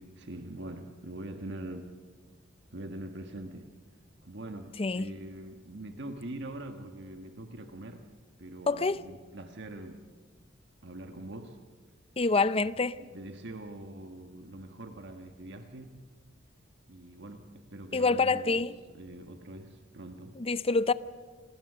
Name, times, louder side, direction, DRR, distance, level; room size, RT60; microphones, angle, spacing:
voice 1, 0.0-1.9 2.7-3.7 4.2-8.1 8.4-10.0 10.8-11.6 12.9-16.0 16.9-18.7 18.9-20.4, right 1 dB, 60° right, 1.4 m, -43 dB
voice 2, 8.7-9.0 12.2-13.0 17.9-18.7 20.4-20.9, left 3 dB, 30° left, 0.6 m, -26 dB
28.0 x 20.0 x 6.7 m
head